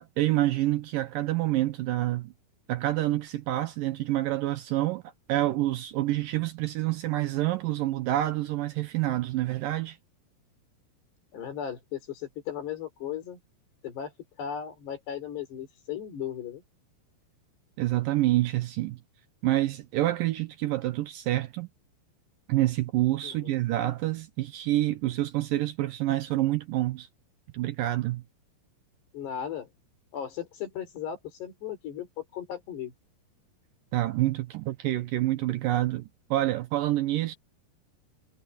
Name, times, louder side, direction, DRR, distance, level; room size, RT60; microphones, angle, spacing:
voice 1, 0.0-2.3 2.7-5.0 5.3-10.0 17.8-19.0 19.4-21.7 22.5-27.1 27.5-28.2 33.9-37.4, right 15 dB, 75° right, 2.1 m, -27 dB
voice 2, 11.3-13.4 13.8-14.1 14.4-16.6 23.2-23.6 29.1-29.7 30.1-32.9, left 9 dB, 85° left, 6.4 m, -36 dB
omnidirectional pair, 4.7 m